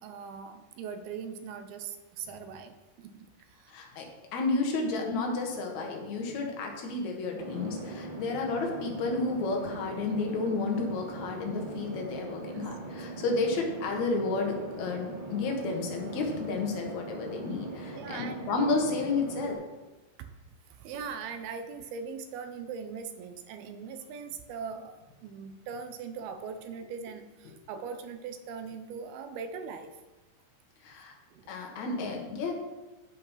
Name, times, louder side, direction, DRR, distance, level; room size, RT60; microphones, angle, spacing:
voice 1, 0.0-3.7 8.3-8.5 17.9-18.5 20.7-24.9 25.2-29.9 31.3-31.5, right 6 dB, 75° right, 7 dB, 2.5 m, -40 dB
voice 2, 3.7-4.0 4.3-19.6 30.8-31.1 31.5-32.5, left 3 dB, 55° left, 1 dB, 2.3 m, -31 dB
sound 1, 7.3-19.5, right 2 dB, 60° right, 4.3 m, -41 dB
8.6 x 7.7 x 5.7 m, 1.1 s
omnidirectional pair, 4.9 m